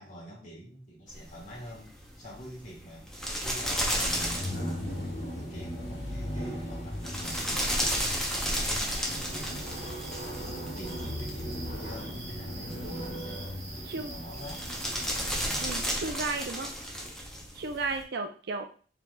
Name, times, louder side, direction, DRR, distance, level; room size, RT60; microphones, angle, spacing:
voice 1, 0.0-3.1 3.4-4.3 5.4-8.4 8.7-10.0 10.4-14.7 15.1-15.4, equal, 45° left, -4 dB, 1.9 m, -47 dB
sound 1, 1.1-18.0, equal, 5° left, 0.7 m, -34 dB
sound 2, 3.9-15.9, equal, 60° left, 1.7 m, -38 dB
sound 3, 7.2-15.8, right 2 dB, 90° right, 1.2 m, -44 dB
voice 2, 15.6-16.7 17.5-18.7, right 3 dB, 60° right, 5 dB, 0.5 m, -34 dB
4.5 x 3.9 x 2.2 m, 0.40 s
head